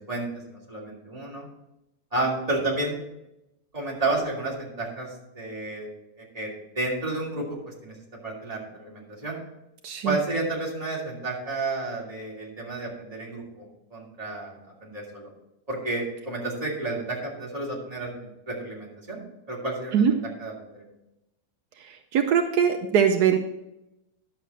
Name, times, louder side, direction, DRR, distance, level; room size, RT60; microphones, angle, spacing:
voice 1, 0.1-1.5 2.1-3.0 3.7-5.1 5.3-5.9 6.2-7.9 8.2-9.4 10.0-13.6 13.9-15.3 15.7-19.2 19.5-20.8, right 2 dB, 20° right, -4 dB, 2.9 m, -31 dB
voice 2, 9.8-10.2 19.9-20.1 22.1-23.4, right 8 dB, 80° right, 5 dB, 1.3 m, -21 dB
11.0 x 7.2 x 4.2 m, 0.88 s
omnidirectional pair, 1.7 m